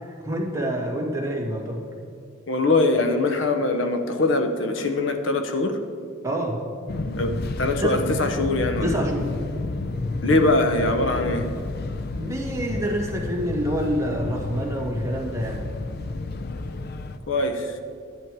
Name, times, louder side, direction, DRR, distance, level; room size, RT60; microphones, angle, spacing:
voice 1, 0.0-1.9 6.2-6.6 7.8-8.0 8.8-9.4 12.2-15.6, right 1 dB, 15° right, -2 dB, 1.8 m, -27 dB
voice 2, 2.5-5.8 7.2-8.9 10.2-11.5 17.3-17.8, left 2 dB, 75° left, 7 dB, 0.9 m, -22 dB
Fixed-wing aircraft airplane, 6.9-17.2, left 2 dB, 55° left, 0.5 m, -30 dB
11.0 x 10.5 x 4.7 m, 2.5 s
head